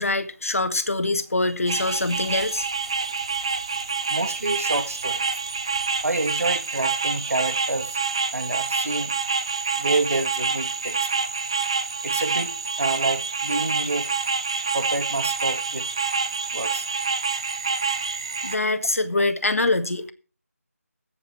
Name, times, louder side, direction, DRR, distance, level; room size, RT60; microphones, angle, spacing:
voice 1, 0.0-2.7 18.4-20.1, left 2 dB, 65° left, 2.1 m, -24 dB
sound 1, 1.7-18.6, right 5 dB, 20° right, 0.6 m, -27 dB
voice 2, 4.1-5.2 6.0-8.0 8.3-9.1 9.8-11.3 12.0-14.1 14.7-15.8 16.5-16.9, right 2 dB, 65° right, 2.2 m, -28 dB
14.0 x 8.6 x 4.8 m
figure-of-eight pair, 175°, 8 cm